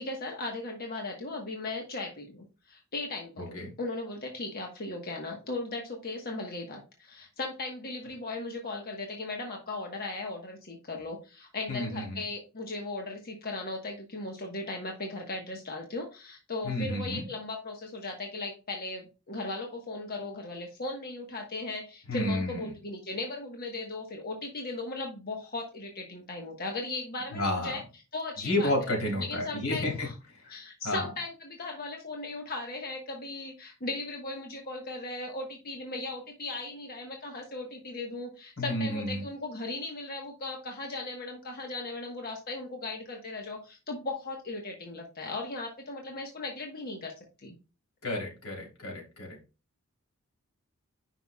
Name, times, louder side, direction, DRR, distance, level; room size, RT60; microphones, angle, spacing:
voice 1, 0.0-27.8 28.1-28.9 29.2-30.1 30.4-47.5, left 2 dB, 45° left, 1 dB, 1.3 m, -37 dB
voice 2, 3.4-3.7 11.7-12.2 16.6-17.3 22.1-22.7 27.3-27.8 28.4-30.1 30.8-31.1 38.6-39.2 48.0-49.4, left 1 dB, 85° left, -1 dB, 3.4 m, -31 dB
9.6 x 5.7 x 2.3 m, 0.31 s
head